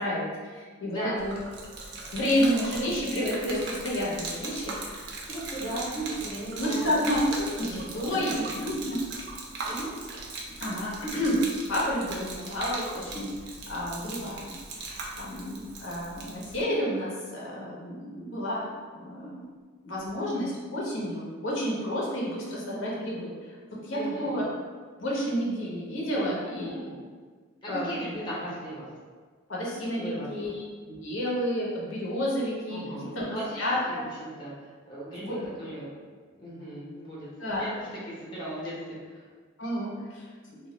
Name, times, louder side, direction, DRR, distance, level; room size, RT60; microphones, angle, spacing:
voice 1, 0.0-1.3 2.1-5.1 5.9-6.0 6.6-9.0 10.6-11.4 11.7-13.3 13.7-14.5 14.8-18.7 18.9-19.5 19.8-23.5 23.8-24.4 25.0-26.7 27.7-28.2 29.5-32.8 33.1-34.0 35.2-35.4 37.4-37.6 39.6-40.3, equal, 70° left, -5 dB, 0.7 m, -30 dB
voice 2, 0.8-1.2 5.3-6.9 7.6-7.8 8.1-8.6 9.6-9.9 23.9-24.4 26.2-26.9 27.6-28.9 30.0-30.3 32.7-33.6 33.9-35.9 36.4-37.3 37.5-39.2, right 1 dB, 25° left, -8 dB, 0.6 m, -37 dB
Gurgling / Liquid, 1.2-16.6, right 3 dB, 55° right, 0.4 m, -39 dB
2.3 x 2.1 x 3.7 m, 1.5 s
head